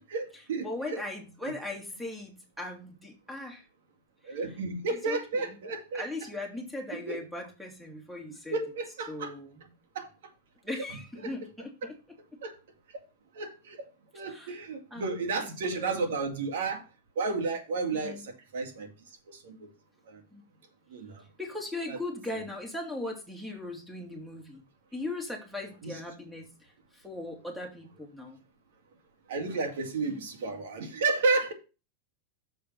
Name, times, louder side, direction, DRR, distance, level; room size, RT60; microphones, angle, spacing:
voice 1, 0.1-1.0 1.4-1.5 4.3-6.0 6.9-7.2 8.5-9.3 9.9-10.1 10.7-10.8 12.4-12.5 13.3-13.8 14.1-16.8 17.2-18.9 19.3-19.6 20.1-20.2 20.9-21.2 21.9-22.0 25.8-26.0 29.3-31.5, right 3 dB, 85° right, 2.2 m, -32 dB
voice 2, 0.6-3.6 4.2-4.4 4.9-5.6 5.9-8.6 9.1-9.7 10.6-12.0 14.3-14.6 14.9-15.1 15.7-16.0 17.9-18.3 20.3-20.4 21.4-24.6 24.9-28.4 30.0-30.2, left 2 dB, 5° right, 2.5 m, -39 dB
6.8 x 5.5 x 5.9 m
supercardioid pair, 140°, 0 cm